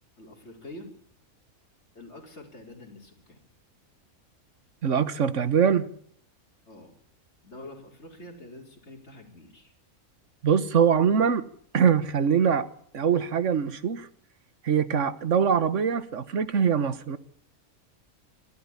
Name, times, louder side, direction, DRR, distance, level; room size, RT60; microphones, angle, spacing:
voice 1, 0.2-0.9 1.9-3.4 6.7-6.9 7.4-9.7, left 1 dB, 50° left, 4.9 m, -46 dB
voice 2, 4.8-5.9 10.4-11.5 11.7-12.7 12.9-14.1 14.6-17.2, right 7 dB, 55° right, 1.5 m, -23 dB
27.0 x 12.0 x 9.9 m
omnidirectional pair, 1.5 m